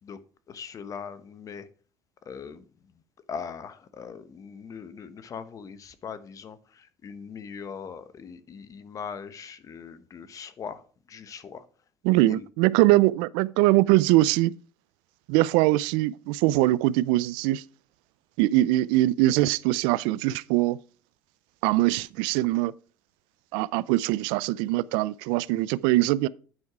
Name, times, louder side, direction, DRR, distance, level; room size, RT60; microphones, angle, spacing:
voice 1, 0.5-1.7 2.2-2.9 3.3-11.7 12.1-12.5, left 6 dB, 45° left, 1.0 m, -40 dB
voice 2, 12.1-14.5 15.3-17.6 18.4-20.8 21.6-22.7 23.5-26.3, right 17 dB, 80° right, 0.3 m, -22 dB
9.4 x 4.7 x 4.8 m
supercardioid pair, 80°, 8 cm